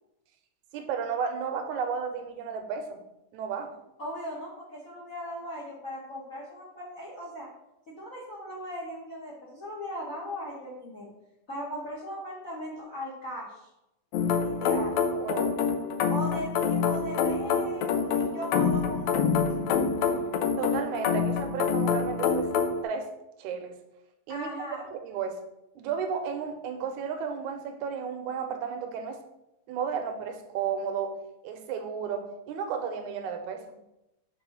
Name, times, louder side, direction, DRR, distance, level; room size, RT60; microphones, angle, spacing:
voice 1, 0.7-3.0 3.3-3.7 14.7-14.8 15.1-15.6 20.6-22.5 22.8-23.1 23.4-23.8 24.3-24.5 24.9-25.4 25.8-29.2 29.7-31.2 31.4-33.7, right 6 dB, 80° right, 7 dB, 2.1 m, -33 dB
voice 2, 4.0-7.5 7.9-11.1 11.5-13.7 14.4-15.0 16.1-19.6 24.3-24.8, equal, 55° left, -5 dB, 0.9 m, -38 dB
sound 1, 14.1-22.8, left 6 dB, 80° left, 1.8 m, -26 dB
5.1 x 4.0 x 5.6 m, 0.89 s
omnidirectional pair, 3.4 m